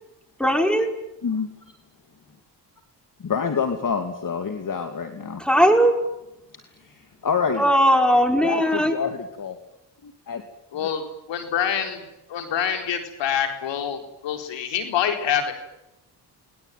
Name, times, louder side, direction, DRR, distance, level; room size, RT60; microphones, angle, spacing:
voice 1, 0.4-0.9 5.4-5.9 7.6-8.9, equal, ahead, 5 dB, 5.5 m, -18 dB
voice 2, 3.2-5.4 6.8-7.7 8.4-9.6 10.0-10.4, left 6 dB, 45° left, 6 dB, 2.6 m, -27 dB
voice 3, 10.7-12.0 12.3-15.5, left 8 dB, 80° left, 6 dB, 4.1 m, -26 dB
29.5 x 20.5 x 9.3 m, 0.91 s
supercardioid pair, 65°, 43 cm